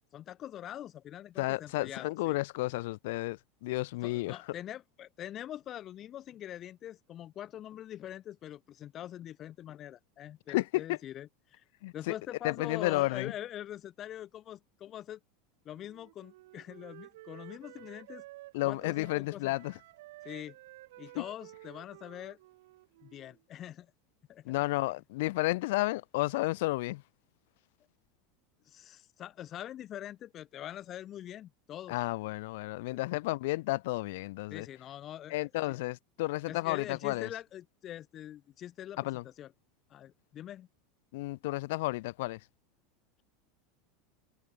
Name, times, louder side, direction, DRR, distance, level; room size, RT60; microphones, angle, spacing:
voice 1, 0.1-2.4 4.0-11.6 11.9-15.2 15.6-18.2 18.6-19.5 20.2-20.5 21.0-22.4 23.0-23.9 24.3-24.5 28.6-32.0 34.5-35.8 36.5-39.0 39.2-39.5 39.9-40.7, left 11 dB, 25° left, 0.8 m, -44 dB
voice 2, 1.4-4.4 10.5-11.0 11.8-12.2 12.4-13.3 18.5-19.8 21.2-21.3 24.4-27.0 31.9-34.7 35.3-37.3 39.0-39.2 41.1-42.4, left 20 dB, 60° left, 0.4 m, -32 dB
Wind instrument woodwind instrument, 15.7-19.3 19.5-23.4, right 18 dB, 65° right, 2.2 m, -53 dB
open air
supercardioid pair, 180°, 0 cm